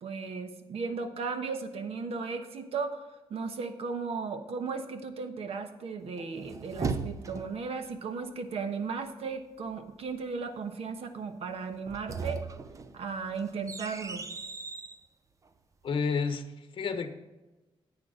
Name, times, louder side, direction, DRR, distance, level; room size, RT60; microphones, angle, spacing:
voice 1, 0.0-12.4 12.9-14.3, right 5 dB, 75° right, 7 dB, 1.2 m, -36 dB
sound 1, 6.2-7.7 11.7-15.0, right 4 dB, 30° right, 0.6 m, -37 dB
voice 2, 15.8-17.1, left 5 dB, 55° left, 8 dB, 1.0 m, -31 dB
10.5 x 8.6 x 3.8 m, 1.1 s
wide cardioid pair, 145°, 10 cm